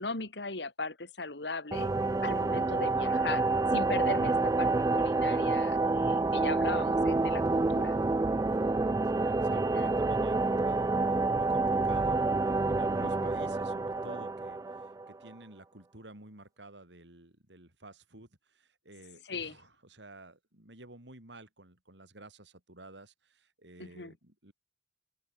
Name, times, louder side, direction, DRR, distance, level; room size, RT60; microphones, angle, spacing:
voice 1, 0.0-1.9 2.2-8.0 9.5-10.0 13.0-13.3 19.2-19.6 23.8-24.1, left 3 dB, 75° left, 2.7 m, -38 dB
sound 1, 1.7-15.3, right 3 dB, 20° right, 0.3 m, -28 dB
voice 2, 8.6-24.5, right 2 dB, 85° right, 5.0 m, -51 dB
open air
head